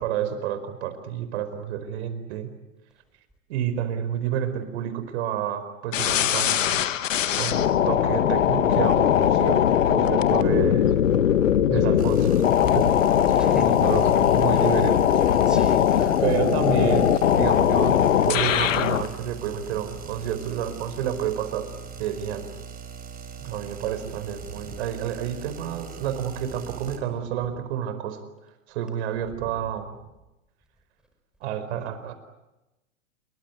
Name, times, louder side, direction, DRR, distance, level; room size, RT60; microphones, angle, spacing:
voice 1, 0.0-2.5 3.5-6.8 7.4-11.0 11.7-12.3 12.7-13.0 13.7-15.2 16.2-21.7 22.0-22.5 23.4-28.2 28.7-30.0 31.4-32.1, right 9 dB, 55° right, 10 dB, 4.8 m, -29 dB
sound 1, 5.9-19.1, left 10 dB, 70° left, 1.7 m, -20 dB
voice 2, 11.4-11.8 13.3-13.8 15.3-16.2 24.5-24.8 29.4-29.5, right 1 dB, ahead, 5 dB, 5.0 m, -38 dB
sound 2, 12.0-27.0, right 7 dB, 20° right, 4.4 m, -41 dB
28.0 x 23.5 x 8.2 m, 0.98 s
hypercardioid pair, 110°, 39 cm